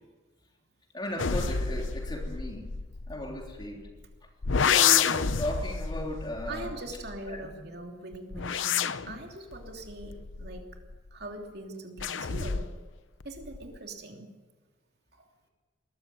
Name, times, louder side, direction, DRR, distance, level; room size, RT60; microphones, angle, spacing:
voice 1, 0.9-2.7 3.1-3.9 4.6-6.7 7.3-7.5, equal, 25° left, 1 dB, 3.5 m, -36 dB
sound 1, 1.2-3.9 4.4-7.5 8.1-11.2 12.0-12.9 13.2-13.8, left 7 dB, 75° left, 0.8 m, -29 dB
voice 2, 6.5-10.6 11.1-12.7 13.2-14.3 15.1-15.3, right 2 dB, 55° right, 2 dB, 3.1 m, -42 dB
21.0 x 14.5 x 9.3 m, 1.3 s
head